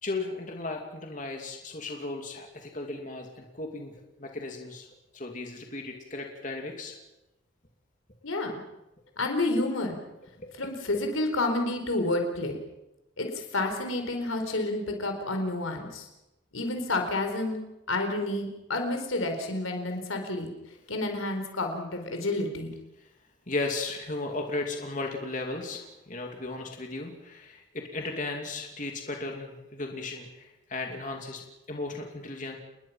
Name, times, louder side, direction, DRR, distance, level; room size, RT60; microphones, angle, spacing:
voice 1, 0.0-4.9 5.1-6.9 10.4-10.7 23.0-23.1 23.5-31.4 31.7-32.6, left 2 dB, 40° left, 2 dB, 2.9 m, -35 dB
voice 2, 8.2-8.6 9.2-10.0 10.6-12.6 13.2-16.1 16.5-17.6 17.9-20.5 20.9-22.7, left 2 dB, 90° left, 5 dB, 4.5 m, -29 dB
30.0 x 20.5 x 5.9 m, 0.95 s
head